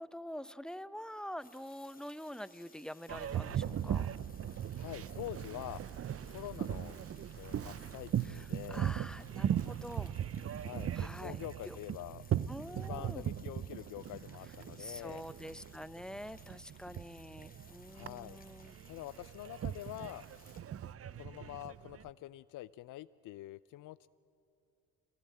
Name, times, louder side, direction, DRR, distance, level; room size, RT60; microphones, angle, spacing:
voice 1, 0.0-4.1 8.2-10.1 10.9-11.4 11.6-11.8 12.5-13.2 14.8-18.7, equal, ahead, 16 dB, 0.8 m, -46 dB
sound 1, 1.4-20.6, left 4 dB, 25° left, 2.6 m, -62 dB
Boat Water vehicle, 3.1-22.1, right 9 dB, 40° right, 0.7 m, -39 dB
voice 2, 4.8-5.8 6.3-7.0 7.4-8.9 10.6-12.2 12.9-15.2 17.9-18.4 18.8-20.2 21.2-24.1, left 15 dB, 60° left, 17 dB, 0.6 m, -46 dB
30.0 x 20.0 x 8.7 m, 2.8 s
hypercardioid pair, 60°, 36 cm